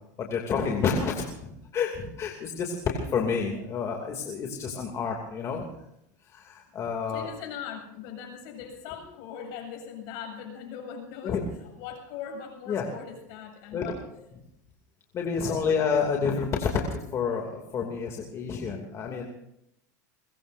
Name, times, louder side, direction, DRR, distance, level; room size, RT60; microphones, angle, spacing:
voice 1, 0.2-5.6 6.3-7.3 11.2-11.4 12.7-12.8 13.7-13.8 15.1-19.3, left 6 dB, 30° left, 1 dB, 2.8 m, -29 dB
voice 2, 7.1-14.0 15.4-15.6, left 7 dB, 60° left, 3 dB, 7.8 m, -40 dB
23.5 x 22.0 x 2.7 m, 0.79 s
supercardioid pair, 130°, 10 cm